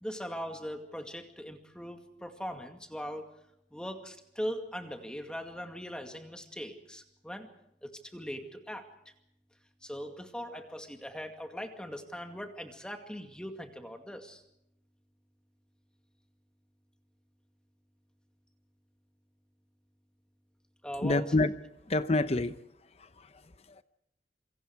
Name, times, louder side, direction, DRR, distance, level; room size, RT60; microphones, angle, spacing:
voice 1, 0.0-3.3 3.7-7.5 7.8-8.9 9.8-14.4 20.8-21.3, equal, 5° left, 4 dB, 2.2 m, -40 dB
voice 2, 21.0-21.5 21.9-22.5 23.0-23.4 23.7-23.8, left 2 dB, 35° left, 12 dB, 0.8 m, -28 dB
27.5 x 25.0 x 4.8 m, 0.78 s
head